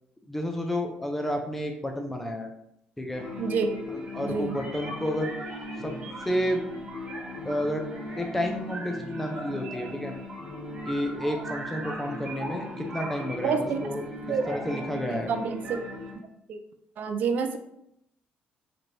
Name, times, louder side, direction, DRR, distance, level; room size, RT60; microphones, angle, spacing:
voice 1, 0.3-2.5 3.0-3.3 3.9-5.3 5.8-5.9 6.2-6.6 7.4-7.9 8.2-10.2 10.9-14.1 14.5-15.3, equal, 5° left, 3 dB, 0.4 m, -30 dB
sound 1, 3.1-16.1, equal, 30° right, 1.2 m, -37 dB
voice 2, 3.4-3.8 4.2-4.6 13.4-13.8 14.3-14.4 15.1-15.8 16.5-16.6 17.0-17.6, right 5 dB, 55° right, 7 dB, 0.4 m, -28 dB
4.4 x 3.1 x 2.6 m, 0.77 s
cardioid pair, 155°, 3 cm